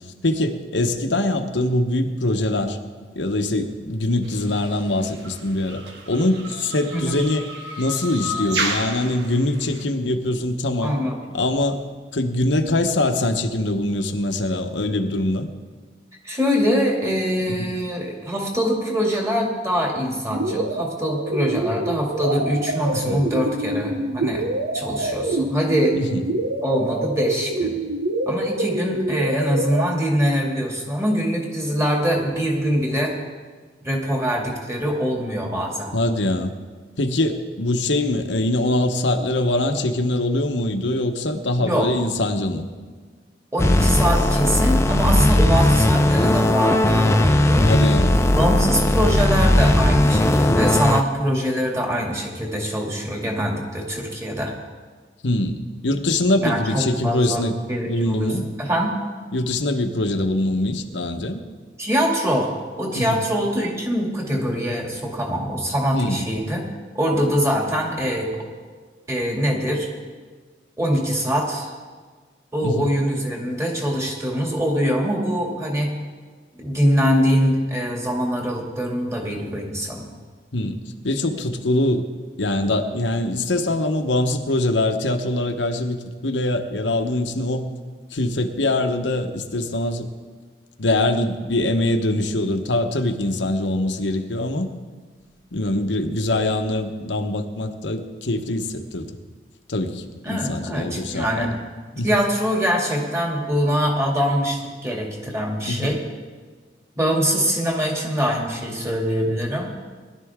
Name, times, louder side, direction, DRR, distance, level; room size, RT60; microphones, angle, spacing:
voice 1, 0.2-2.8 3.1-7.5 7.8-10.9 11.3-11.8 12.1-15.5 17.6-17.7 22.9-23.2 25.9-26.2 35.9-36.5 37.0-42.6 47.6-48.2 50.4-50.6 55.2-55.6 55.8-57.5 57.8-58.4 59.3-61.4 62.9-63.2 65.9-66.3 72.6-72.9 80.5-80.8 81.0-82.0 82.4-87.7 88.1-90.1 90.8-94.7 95.5-99.1 99.7-101.6 102.0-102.1 105.6-106.0, left 1 dB, 85° left, 6 dB, 1.1 m, -23 dB
sound 1, 4.2-9.8, right 1 dB, 70° right, 1.6 m, -32 dB
voice 2, 10.8-11.2 12.6-12.7 16.2-24.4 24.7-26.0 26.6-27.7 28.3-33.1 33.8-35.9 41.6-41.9 43.5-47.7 48.3-54.5 56.4-58.3 58.6-59.0 61.8-62.5 62.7-66.6 66.9-68.5 69.1-69.9 70.8-71.7 72.5-75.9 76.6-80.1 100.2-101.5 101.9-106.0 107.0-109.7, equal, 15° right, -1 dB, 2.4 m, -23 dB
sound 2, 20.3-29.8, right 2 dB, 90° right, 0.8 m, -26 dB
sound 3, 43.6-51.0, left 1 dB, 15° left, 0.5 m, -17 dB
20.0 x 12.0 x 3.7 m, 1.5 s
head